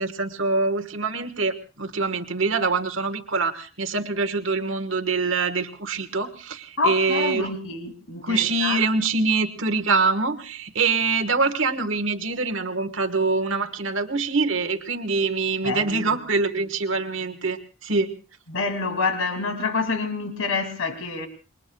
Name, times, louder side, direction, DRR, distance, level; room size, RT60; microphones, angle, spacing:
voice 1, 0.0-7.5 8.2-18.1, right 4 dB, 70° right, 7 dB, 1.4 m, -24 dB
voice 2, 6.8-8.8 15.6-16.2 18.5-21.3, left 4 dB, 85° left, 7 dB, 2.6 m, -27 dB
27.5 x 23.0 x 2.3 m, 0.34 s
head